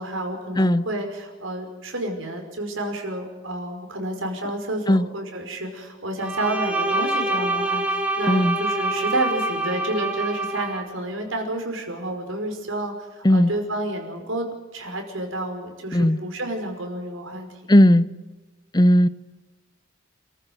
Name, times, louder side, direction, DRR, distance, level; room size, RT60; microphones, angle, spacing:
voice 1, 0.0-14.5 14.7-17.5, right 1 dB, 75° right, 5.4 m, -30 dB
Bowed string instrument, 6.2-10.8, right 2 dB, 5° right, 4.5 m, -26 dB
voice 2, 17.7-18.1 18.7-19.1, left 1 dB, 20° left, 0.7 m, -16 dB
29.5 x 14.5 x 8.1 m
head